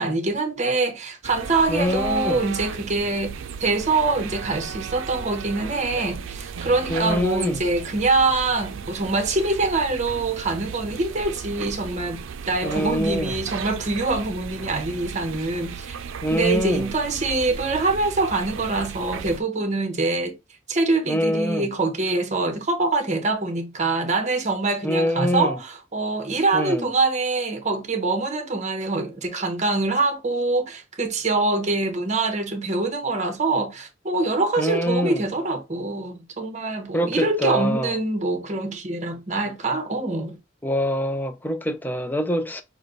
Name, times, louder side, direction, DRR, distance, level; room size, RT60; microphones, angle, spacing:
voice 1, 0.0-16.0 16.3-20.4 20.7-40.4, right 3 dB, 35° right, 1.0 m, -24 dB
sound 1, 1.2-19.4, right 6 dB, 80° right, 0.4 m, -35 dB
voice 2, 1.7-2.5 6.9-7.6 12.6-13.3 16.2-16.9 21.1-21.7 24.8-25.6 26.5-26.9 34.6-35.2 36.9-38.0 40.6-42.6, equal, 10° left, 0.5 m, -24 dB
6.2 x 2.2 x 3.8 m
head